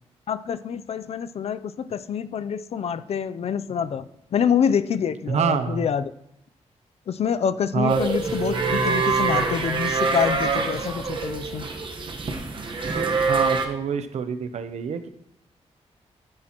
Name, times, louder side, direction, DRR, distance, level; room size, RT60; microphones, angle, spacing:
voice 1, 0.3-4.0 4.3-6.0 7.1-11.7, left 7 dB, 65° left, 13 dB, 0.5 m, -26 dB
voice 2, 5.3-5.8 7.7-8.0 13.3-15.1, right 6 dB, 70° right, 9 dB, 0.6 m, -26 dB
sound 1, 7.9-13.7, right 4 dB, 45° right, 1.2 m, -25 dB
12.5 x 9.6 x 3.0 m, 0.74 s
wide cardioid pair, 160°, 12 cm